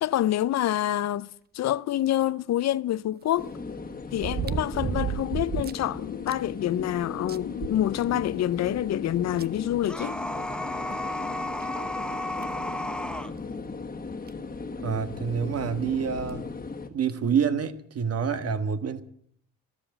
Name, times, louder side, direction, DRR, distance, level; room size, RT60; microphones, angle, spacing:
voice 1, 0.0-3.5 4.1-10.2, left 12 dB, 60° left, 0.6 m, -27 dB
sound 1, 2.2-2.3 4.1-5.9 6.3-6.4 6.8-6.9 7.3-8.4 9.4-9.5 10.9-11.0 11.6-11.7 12.4-12.6 14.0-14.1 14.3-14.4 16.1-16.4 17.1-17.2, right 8 dB, 35° right, 0.6 m, -32 dB
sound 2, 3.4-16.9, left 4 dB, 30° left, 1.7 m, -38 dB
sound 3, 9.8-13.3, left 1 dB, 5° left, 0.8 m, -33 dB
voice 2, 14.8-16.5 16.9-19.0, right 6 dB, 55° right, 1.5 m, -27 dB
13.0 x 12.0 x 9.0 m
cardioid pair, 90°, 30 cm